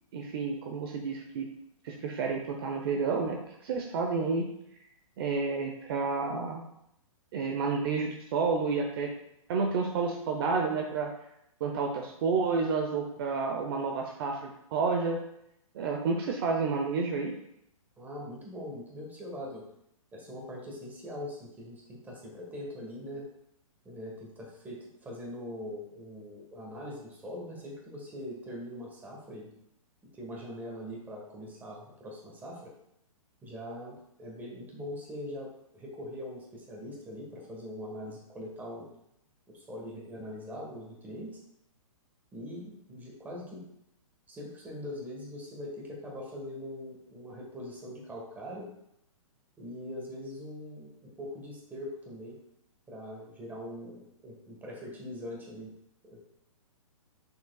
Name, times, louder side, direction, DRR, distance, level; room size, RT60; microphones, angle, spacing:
voice 1, 0.1-1.5 1.8-4.5 5.2-6.6 7.3-9.1 9.5-11.1 11.6-15.2 15.7-17.3, right 4 dB, 40° right, 2 dB, 0.7 m, -30 dB
voice 2, 18.0-19.6 20.1-23.2 23.8-29.5 30.2-32.7 33.4-38.9 39.5-41.4 42.3-43.6 44.3-48.7 49.6-52.4 52.9-55.7 56.0-56.2, left 1 dB, 10° right, -2 dB, 1.4 m, -42 dB
7.0 x 6.7 x 2.3 m, 0.79 s
hypercardioid pair, 145°, 18 cm